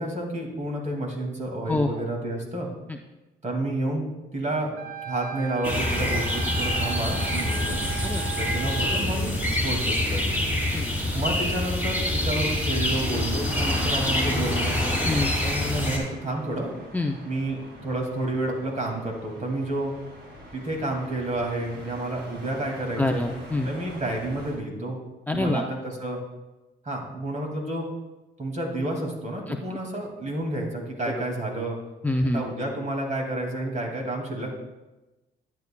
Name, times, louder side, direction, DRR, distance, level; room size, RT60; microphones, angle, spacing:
voice 1, 0.0-2.7 3.4-4.0 4.3-4.7 5.0-7.8 8.4-10.3 11.1-14.8 15.4-16.7 17.2-19.9 20.5-23.2 23.6-25.0 25.3-26.2 26.8-27.9 28.4-31.8 32.3-34.5, right 1 dB, 35° right, 1 dB, 2.4 m, -30 dB
Wind instrument woodwind instrument, 4.8-9.0, right 7 dB, 80° right, 0.8 m, -37 dB
sound 1, 5.6-16.0, left 1 dB, 10° right, 2.5 m, -26 dB
sound 2, 13.0-24.6, right 1 dB, 65° right, 2.8 m, -43 dB
voice 2, 23.0-23.7 25.3-25.6 29.5-29.6 31.1-31.2 32.0-32.4, left 2 dB, 10° left, 2 dB, 0.5 m, -25 dB
11.5 x 9.5 x 2.3 m, 1.1 s
cardioid pair, 90°, 20 cm